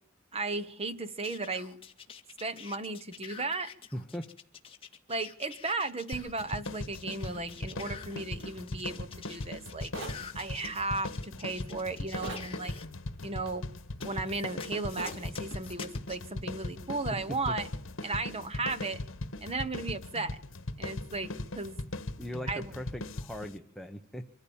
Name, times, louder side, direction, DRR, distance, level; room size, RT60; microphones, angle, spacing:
voice 1, 0.3-1.8 2.4-3.7 5.1-9.9 10.3-12.7 13.2-13.6 14.0-17.7 18.0-19.0 19.4-20.4 20.8-21.8 22.5-22.7, right 3 dB, 30° right, 1.2 m, -35 dB
sound 1, 1.2-12.9 14.0-16.2, left 7 dB, 30° left, 1.9 m, -48 dB
voice 2, 3.9-4.3 17.1-17.6 22.2-24.2, equal, ahead, 0.9 m, -39 dB
sound 2, 6.1-23.6, left 2 dB, 70° left, 1.5 m, -39 dB
sound 3, 9.9-10.2 12.2-12.5 15.0-15.2, right 2 dB, 65° right, 3.5 m, -39 dB
25.0 x 14.5 x 7.2 m
head